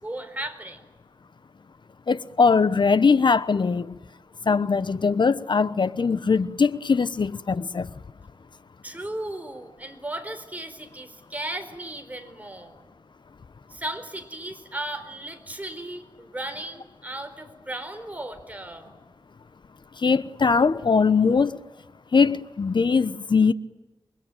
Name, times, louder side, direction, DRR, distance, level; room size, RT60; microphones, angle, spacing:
voice 1, 0.0-0.8 8.8-12.8 13.7-18.9, right 1 dB, 20° right, 4.3 m, -36 dB
voice 2, 2.1-3.9 4.5-7.9 20.0-21.6 22.1-23.5, left 5 dB, 65° left, 1.0 m, -21 dB
28.5 x 23.0 x 9.1 m
wide cardioid pair, 90°, 9 cm